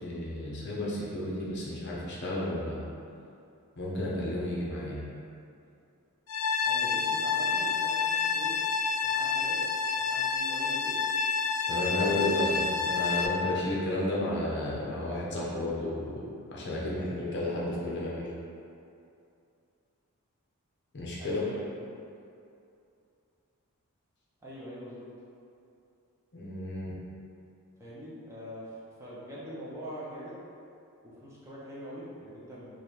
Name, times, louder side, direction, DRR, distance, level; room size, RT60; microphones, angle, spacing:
voice 1, 0.0-2.8 3.8-5.0 11.7-18.3 20.9-21.4 26.3-27.0, left 1 dB, 50° left, -5 dB, 0.7 m, -32 dB
sound 1, 6.3-13.3, left 5 dB, 75° left, 0.3 m, -29 dB
voice 2, 6.7-8.6 9.0-9.6 10.0-10.9 11.9-12.2 21.2-21.7 24.4-25.1 27.8-30.4 31.0-32.8, equal, 15° right, -8 dB, 0.6 m, -43 dB
3.2 x 2.4 x 4.2 m, 2.6 s
head